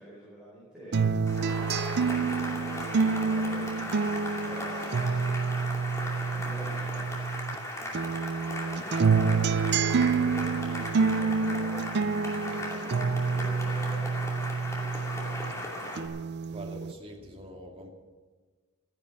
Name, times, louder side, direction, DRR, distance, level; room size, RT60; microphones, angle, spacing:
voice 1, 0.0-5.0 6.3-7.2 8.7-15.9, right 1 dB, 5° right, -8 dB, 4.9 m, -47 dB
sound 1, 0.9-7.6 7.9-15.6 16.0-16.9, right 5 dB, 55° right, 0.5 m, -28 dB
Cheering / Applause, 1.3-16.1, left 1 dB, 15° left, 2.5 m, -37 dB
voice 2, 16.5-17.9, right 1 dB, 30° right, 1 dB, 2.2 m, -44 dB
14.5 x 10.5 x 7.3 m, 1.4 s
head